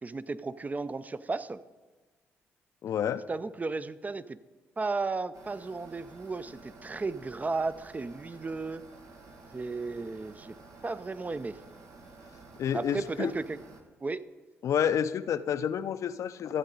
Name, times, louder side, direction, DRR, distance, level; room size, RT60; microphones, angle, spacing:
voice 1, 0.0-1.6 3.3-4.4 4.8-8.8 9.5-10.5 10.8-11.6 12.7-13.6 14.0-14.2, right 3 dB, 25° right, 14 dB, 0.4 m, -34 dB
voice 2, 2.8-3.2 12.6-13.3 14.6-16.6, left 8 dB, 65° left, 13 dB, 0.4 m, -29 dB
sound 1, 5.3-13.8, right 3 dB, 75° right, 1.1 m, -52 dB
12.5 x 7.5 x 3.9 m, 1.3 s
supercardioid pair, 55°, 6 cm